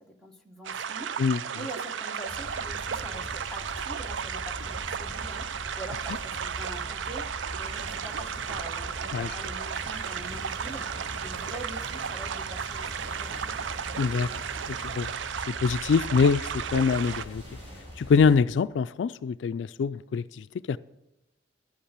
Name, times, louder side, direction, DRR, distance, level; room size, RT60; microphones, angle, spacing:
voice 1, 0.0-1.2 1.5-10.9 11.2-13.4, right 1 dB, ahead, 1.2 m, -44 dB
sound 1, 0.6-17.2, right 7 dB, 80° right, 0.4 m, -34 dB
sound 2, 2.3-18.4, equal, 35° right, 5.3 m, -42 dB
voice 2, 14.0-14.3 14.6-15.1 15.5-17.4 18.0-20.8, left 5 dB, 75° left, 0.3 m, -24 dB
11.5 x 8.5 x 7.3 m
head